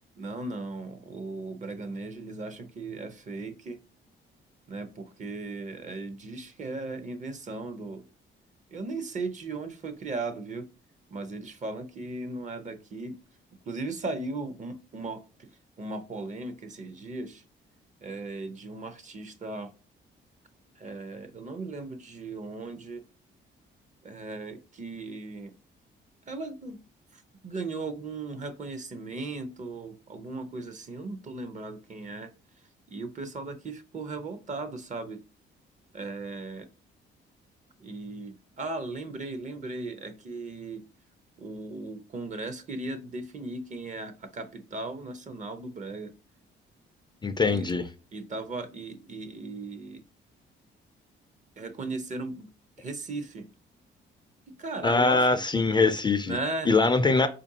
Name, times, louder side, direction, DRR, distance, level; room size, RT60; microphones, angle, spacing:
voice 1, 0.2-3.8 4.7-8.0 8.7-10.7 11.1-13.2 13.7-15.5 15.8-17.4 18.0-19.7 20.8-23.0 24.0-25.5 26.3-26.8 27.1-32.3 32.9-35.2 35.9-36.7 37.8-40.8 41.4-46.1 47.5-47.7 48.1-50.0 51.6-52.5 52.8-53.5 54.5-55.3 56.2-56.7, right 3 dB, 40° right, 0.7 m, -37 dB
voice 2, 47.2-47.8 54.8-56.4 56.7-57.3, left 3 dB, 20° left, 0.4 m, -22 dB
4.5 x 2.5 x 2.7 m
cardioid pair, 90°, 20 cm